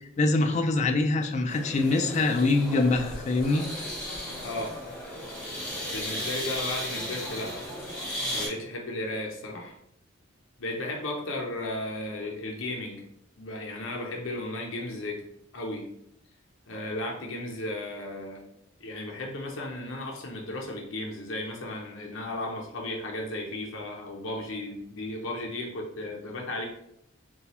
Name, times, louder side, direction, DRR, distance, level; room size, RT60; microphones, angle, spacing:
voice 1, 0.2-3.6, left 3 dB, 35° left, 5 dB, 0.3 m, -24 dB
sound 1, 1.5-8.5, equal, 5° left, 1.4 m, -35 dB
voice 2, 4.4-4.8 5.8-7.5 8.3-9.7 10.6-13.1 13.4-15.2 15.5-15.9 16.7-18.4 18.8-26.7, left 1 dB, 80° left, 0 dB, 0.6 m, -35 dB
3.9 x 2.3 x 2.9 m, 0.74 s
head